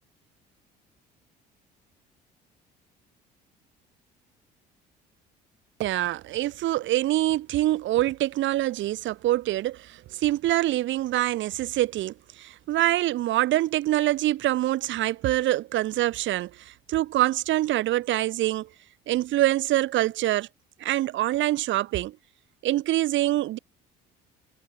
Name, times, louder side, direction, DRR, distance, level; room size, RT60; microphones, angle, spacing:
voice 1, 5.8-18.7 19.1-20.5 20.8-22.2 22.6-23.6, right 15 dB, 65° right, 4.4 m, -25 dB
hypercardioid pair, 65°, 21 cm